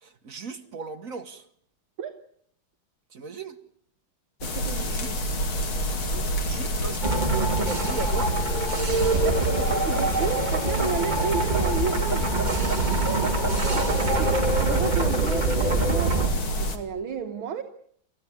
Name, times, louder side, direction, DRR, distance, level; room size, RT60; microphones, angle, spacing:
voice 1, 0.0-1.5 3.1-3.6 4.5-5.1 6.1-6.2 6.4-8.4 13.7-14.6, right 4 dB, 45° right, 1.5 m, -37 dB
sound 1, 4.4-16.8, equal, 75° left, 3.2 m, -28 dB
voice 2, 4.4-5.4 6.1-6.4 9.2-13.9 14.2-17.6, right 7 dB, 75° right, 2.0 m, -33 dB
sound 2, 7.0-16.3, right 3 dB, 25° right, 1.6 m, -25 dB
29.0 x 15.0 x 9.8 m
omnidirectional pair, 2.3 m